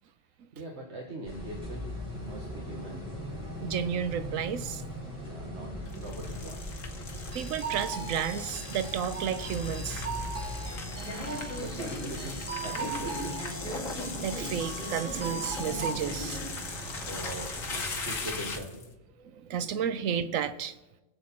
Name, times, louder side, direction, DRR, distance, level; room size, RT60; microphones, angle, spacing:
voice 1, 0.5-1.9 2.2-3.0 5.2-6.8 11.6-13.4 17.0-18.8, right 1 dB, 60° right, 0 dB, 1.8 m, -41 dB
sound 1, 1.2-18.6, equal, 5° right, 5.5 m, -39 dB
voice 2, 3.6-4.8 7.3-10.0 13.8-16.4 19.2-20.8, right 8 dB, 85° right, 12 dB, 1.1 m, -32 dB
sound 2, 5.9-18.9, left 4 dB, 85° left, 1.7 m, -40 dB
sound 3, 7.3-16.4, right 5 dB, 40° right, 2.0 m, -40 dB
22.0 x 8.0 x 4.3 m, 1.0 s
omnidirectional pair, 1.3 m